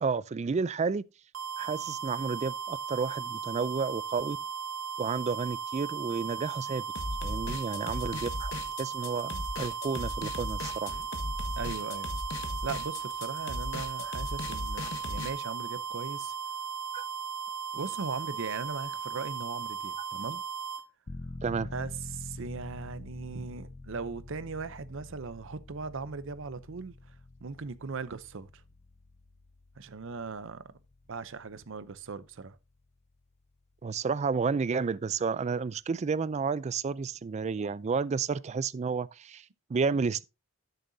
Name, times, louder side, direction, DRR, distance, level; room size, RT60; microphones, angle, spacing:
voice 1, 0.0-1.0 1.6-4.4 5.0-6.8 7.2-8.5 8.8-10.9 16.9-17.0 21.4-21.7 23.3-23.5 33.8-40.2, right 5 dB, 30° right, 0.3 m, -31 dB
sound 1, 1.3-20.8, right 6 dB, 90° right, 1.4 m, -37 dB
sound 2, 7.0-15.3, left 2 dB, 65° left, 1.3 m, -37 dB
voice 2, 11.6-12.1 12.6-16.3 17.7-20.4 21.7-27.1 27.4-28.6 29.8-30.8 31.1-32.6, right 4 dB, 65° right, 0.7 m, -39 dB
sound 3, 21.1-33.6 33.9-34.0, left 2 dB, 30° left, 0.5 m, -47 dB
12.0 x 6.6 x 2.7 m
head